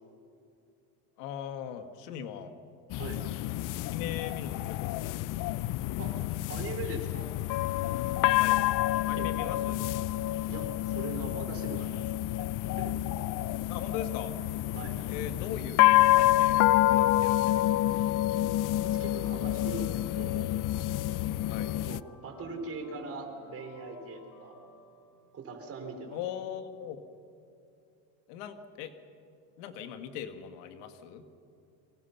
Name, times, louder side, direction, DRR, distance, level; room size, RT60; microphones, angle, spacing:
voice 1, 1.2-2.5 3.9-5.3 8.4-8.6 9.1-9.9 13.7-14.3 15.1-15.8 16.1-16.6 16.9-17.9 21.5-21.7 26.1-27.0 28.3-28.9 29.6-31.2, left 9 dB, 85° left, 8 dB, 2.0 m, -40 dB
sound 1, 2.9-22.0, left 15 dB, 45° left, 0.5 m, -28 dB
voice 2, 6.5-7.3 9.2-9.5 10.5-12.0 12.4-12.5 12.8-13.0 14.7-15.0 18.8-19.9 20.1-20.5 21.8-24.6 25.3-26.2, right 3 dB, 30° right, 4 dB, 4.1 m, -41 dB
sound 2, 18.7-25.7, left 2 dB, 60° left, 6.1 m, -56 dB
29.5 x 24.5 x 5.9 m, 2.6 s
cardioid pair, 145°, 46 cm